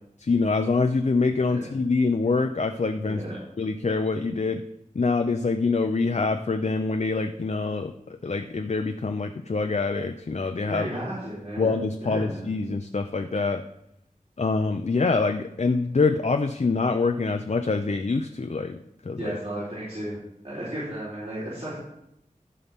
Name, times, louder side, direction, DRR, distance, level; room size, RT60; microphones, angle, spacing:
voice 1, 0.2-3.2 3.6-4.6 4.9-10.9 11.6-13.6 14.4-18.8 19.0-19.4, left 4 dB, 55° left, 6 dB, 0.6 m, -25 dB
voice 2, 3.0-3.4 10.7-11.7 12.0-12.4 19.2-20.2 20.4-21.8, right 1 dB, 50° right, -10 dB, 4.0 m, -34 dB
14.5 x 5.7 x 3.6 m, 0.82 s
wide cardioid pair, 40°, 14 cm